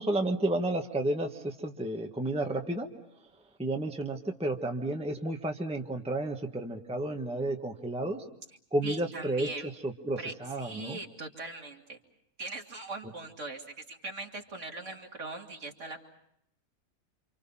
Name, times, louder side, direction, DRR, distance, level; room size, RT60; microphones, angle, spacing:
voice 1, 0.0-2.9 3.6-8.2 8.7-11.0, right 1 dB, 5° right, 2 dB, 1.4 m, -32 dB
voice 2, 8.8-9.7 10.2-12.0 12.4-16.0, right 3 dB, 55° right, 1 dB, 2.8 m, -41 dB
28.5 x 27.0 x 5.7 m, 0.72 s
omnidirectional pair, 1.5 m